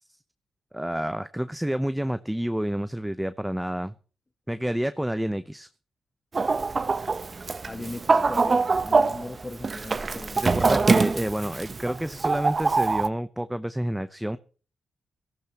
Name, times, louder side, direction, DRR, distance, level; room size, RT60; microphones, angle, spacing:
voice 1, 0.7-3.9 4.5-5.7 10.3-14.4, equal, 5° right, 12 dB, 0.8 m, -29 dB
Chicken rooster, 6.3-13.1, right 4 dB, 40° right, 0.9 m, -24 dB
voice 2, 7.7-10.4, left 2 dB, 30° left, 5 dB, 1.7 m, -38 dB
22.0 x 14.0 x 3.0 m, 0.38 s
supercardioid pair, 55°, 0 cm